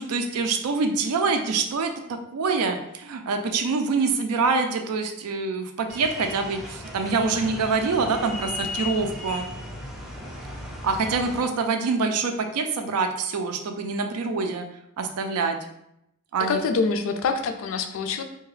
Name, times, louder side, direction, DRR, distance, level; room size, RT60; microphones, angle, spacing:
voice 1, 0.0-9.5 10.8-14.7 15.0-15.6 16.3-16.6, right 4 dB, 75° right, 6 dB, 0.4 m, -25 dB
sound 1, 5.9-11.4, left 2 dB, ahead, 0.5 m, -36 dB
voice 2, 16.5-18.2, left 4 dB, 60° left, 7 dB, 0.3 m, -25 dB
2.7 x 2.3 x 3.1 m, 0.79 s
head